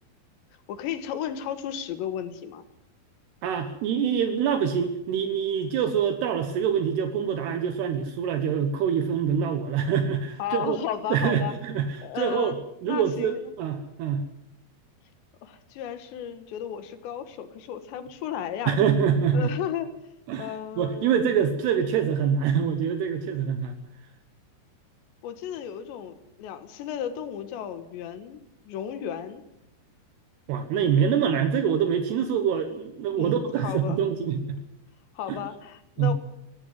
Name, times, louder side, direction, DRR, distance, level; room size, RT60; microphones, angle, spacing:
voice 1, 0.7-2.6 10.4-11.5 12.0-12.6 12.8-13.5 15.4-18.7 19.3-19.9 20.4-21.3 25.2-29.4 33.1-34.0 35.2-36.1, left 9 dB, 80° left, 10 dB, 3.7 m, -34 dB
voice 2, 3.4-10.8 11.1-12.6 12.8-14.3 18.7-19.5 20.3-23.8 30.5-34.6 35.3-35.4 36.0-36.1, right 7 dB, 75° right, 7 dB, 3.2 m, -25 dB
18.0 x 15.5 x 9.4 m, 0.84 s
omnidirectional pair, 5.0 m